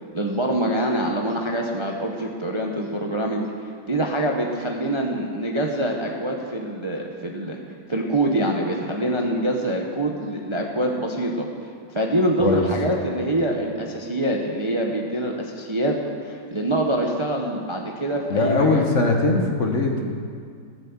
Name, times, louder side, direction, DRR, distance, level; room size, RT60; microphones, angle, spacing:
voice 1, 0.1-3.4 3.9-7.6 7.9-11.5 11.9-16.0 16.2-18.8, right 1 dB, 20° right, 0 dB, 0.8 m, -25 dB
voice 2, 18.3-20.0, left 3 dB, 50° left, 2 dB, 1.4 m, -20 dB
14.5 x 8.3 x 7.2 m, 2.2 s
omnidirectional pair, 1.8 m